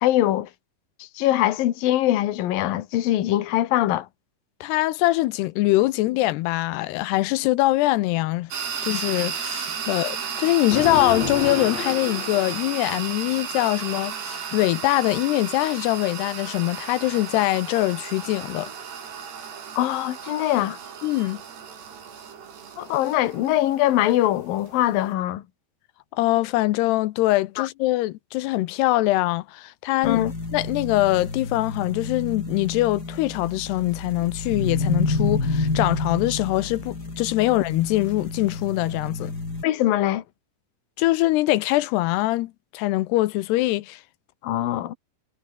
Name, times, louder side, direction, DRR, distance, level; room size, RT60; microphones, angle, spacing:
voice 1, 0.0-0.5 1.0-4.1 19.8-20.8 22.8-25.4 27.6-27.7 30.0-30.3 39.6-40.2 44.4-44.9, left 14 dB, 65° left, 3.0 m, -22 dB
voice 2, 4.6-8.5 8.8-18.7 21.0-21.4 26.1-30.2 30.5-39.3 41.0-44.0, left 18 dB, 80° left, 2.7 m, -23 dB
sound 1, 8.5-25.1, right 7 dB, 70° right, 6.0 m, -34 dB
sound 2, 10.7-13.1, left 5 dB, 40° left, 5.0 m, -31 dB
sound 3, 30.0-39.6, left 3 dB, 20° left, 4.7 m, -29 dB
omnidirectional pair, 4.9 m